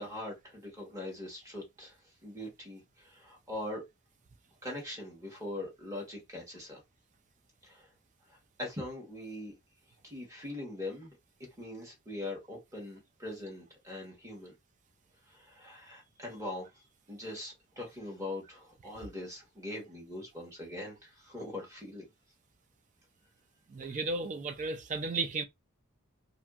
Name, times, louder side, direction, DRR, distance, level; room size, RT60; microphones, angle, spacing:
voice 1, 0.0-2.0 2.2-3.8 4.6-6.8 7.6-7.9 8.3-9.6 10.0-11.1 11.4-14.5 15.3-22.0 23.8-24.0, left 1 dB, 15° right, 1.1 m, -42 dB
voice 2, 23.7-25.4, right 3 dB, 35° right, 0.3 m, -34 dB
2.7 x 2.6 x 2.3 m
head